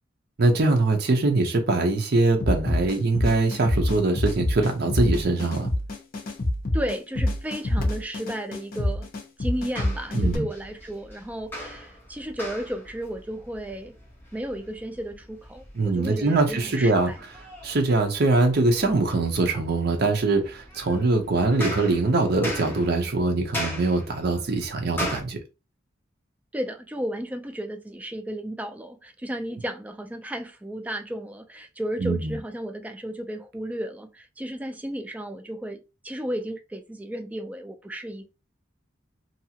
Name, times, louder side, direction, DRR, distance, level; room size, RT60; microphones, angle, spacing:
voice 1, 0.4-5.7 10.1-10.5 15.7-17.1 17.6-25.4 32.0-32.4, right 2 dB, 55° right, 0.7 m, -23 dB
sound 1, 2.4-10.4, left 1 dB, 50° left, 0.7 m, -26 dB
voice 2, 6.7-9.1 9.4-13.9 14.3-17.2 26.5-38.3, equal, 10° right, 0.3 m, -33 dB
sound 2, 9.4-25.2, left 1 dB, 10° left, 0.9 m, -39 dB
2.7 x 2.4 x 2.8 m
head